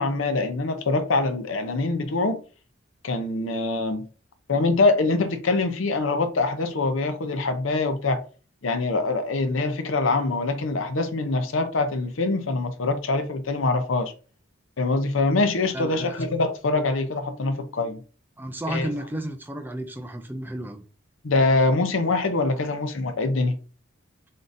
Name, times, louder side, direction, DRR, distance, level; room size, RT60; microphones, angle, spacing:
voice 1, 0.0-2.4 3.0-4.1 4.5-8.2 8.6-14.1 14.8-18.0 18.7-18.9 21.2-23.6, left 3 dB, 75° left, 0.7 m, -24 dB
voice 2, 15.7-16.1 18.4-20.8, right 1 dB, 10° right, 0.4 m, -32 dB
3.8 x 3.7 x 2.6 m
head